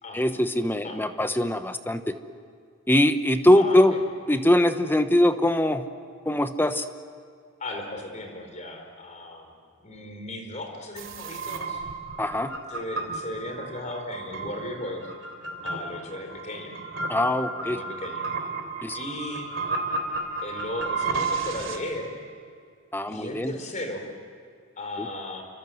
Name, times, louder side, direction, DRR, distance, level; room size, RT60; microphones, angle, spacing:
voice 1, 0.1-2.2 2.9-4.0 4.3-5.8 6.2-6.9 12.2-12.5 17.1-17.8 18.8-19.0 22.9-23.5 25.0-25.1, left 1 dB, 10° left, 9 dB, 1.0 m, -22 dB
voice 2, 3.5-4.0 7.6-9.5 9.8-11.8 12.7-15.1 15.6-16.8 17.6-18.3 18.9-19.5 20.4-22.2 23.1-24.0 24.8-25.4, left 1 dB, 35° left, 4 dB, 4.6 m, -36 dB
sound 1, 11.0-21.8, right 3 dB, 70° right, 3.5 m, -33 dB
29.5 x 25.0 x 7.9 m, 2.3 s
head